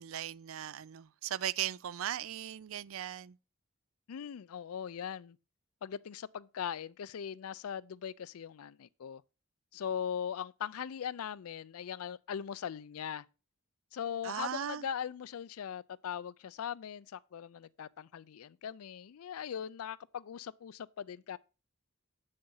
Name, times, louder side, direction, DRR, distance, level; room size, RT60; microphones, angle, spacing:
voice 1, 0.0-3.4 14.2-14.9, right 10 dB, 65° right, 0.4 m, -38 dB
voice 2, 4.1-5.4 5.8-9.2 9.7-13.2 13.9-21.4, left 8 dB, 85° left, 0.4 m, -40 dB
8.2 x 6.6 x 5.5 m
head